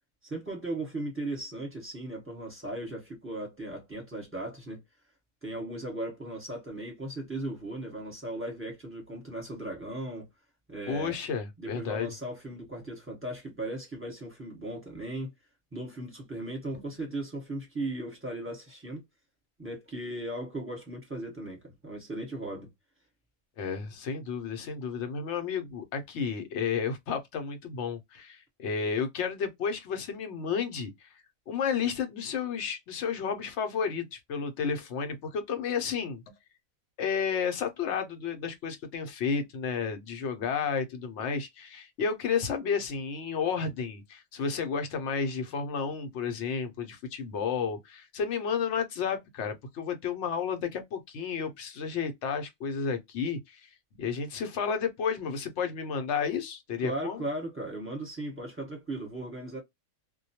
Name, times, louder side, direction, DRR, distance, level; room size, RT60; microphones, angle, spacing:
voice 1, 0.2-4.8 5.4-10.3 10.7-11.1 11.6-15.3 15.7-19.0 19.6-22.7 56.8-59.6, right 1 dB, 10° right, 1.0 m, -37 dB
voice 2, 10.9-12.1 23.6-31.1 31.5-36.2 37.0-57.3, left 6 dB, 65° left, 0.8 m, -32 dB
2.2 x 2.2 x 2.7 m
omnidirectional pair, 1.4 m